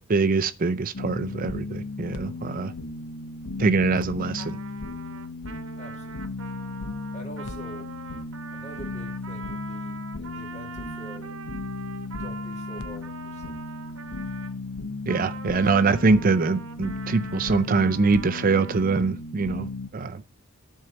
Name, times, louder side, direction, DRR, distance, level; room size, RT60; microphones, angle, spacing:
voice 1, 0.0-2.7 3.6-4.6 15.1-20.2, right 4 dB, 40° right, 0.5 m, -23 dB
sound 1, 0.9-19.9, left 3 dB, 90° left, 0.9 m, -36 dB
Trumpet, 4.4-14.6 15.1-18.9, right 5 dB, 65° right, 1.0 m, -43 dB
voice 2, 5.8-6.5 7.1-8.0 8.5-11.4 12.1-13.6, right 1 dB, 35° left, 2.4 m, -45 dB
11.0 x 4.6 x 7.0 m
head